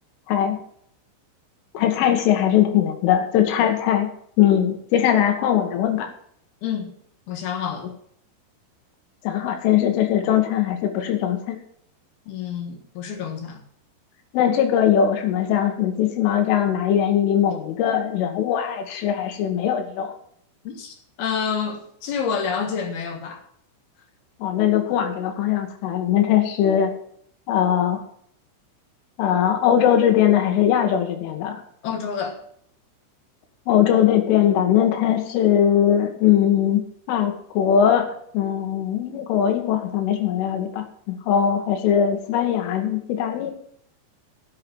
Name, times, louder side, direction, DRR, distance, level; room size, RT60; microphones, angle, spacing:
voice 1, 0.3-0.6 1.7-4.1 4.4-6.1 9.2-11.6 14.3-20.2 24.4-26.9 27.5-28.0 29.2-31.6 33.7-38.1 38.3-43.5, left 9 dB, 90° left, 4.1 m, -20 dB
voice 2, 6.6-6.9 7.3-7.9 12.3-13.6 20.6-23.4 31.8-32.4, left 7 dB, 65° left, 2.9 m, -28 dB
11.5 x 7.8 x 7.0 m
omnidirectional pair, 5.5 m